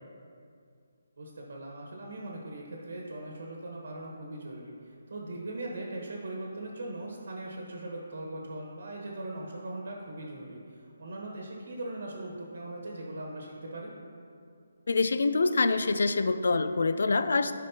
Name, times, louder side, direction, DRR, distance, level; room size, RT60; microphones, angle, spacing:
voice 1, 1.2-13.9, right 2 dB, 70° right, -1 dB, 1.3 m, -40 dB
voice 2, 14.9-17.5, left 3 dB, 70° left, 11 dB, 0.4 m, -25 dB
11.5 x 5.1 x 2.9 m, 2.4 s
hypercardioid pair, 160°, 0 cm